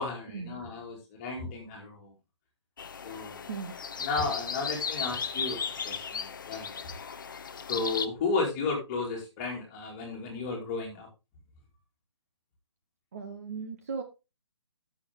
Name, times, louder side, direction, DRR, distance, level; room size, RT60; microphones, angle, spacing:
voice 1, 0.0-2.1 3.0-3.5 4.0-7.0 7.7-11.1, left 4 dB, 15° left, 0 dB, 2.5 m, -33 dB
sound 1, 2.8-8.1, left 6 dB, 50° left, 0.7 m, -36 dB
voice 2, 13.1-14.0, right 5 dB, 35° right, 6 dB, 1.1 m, -37 dB
12.0 x 6.7 x 3.6 m, 0.27 s
hypercardioid pair, 175°, 14 cm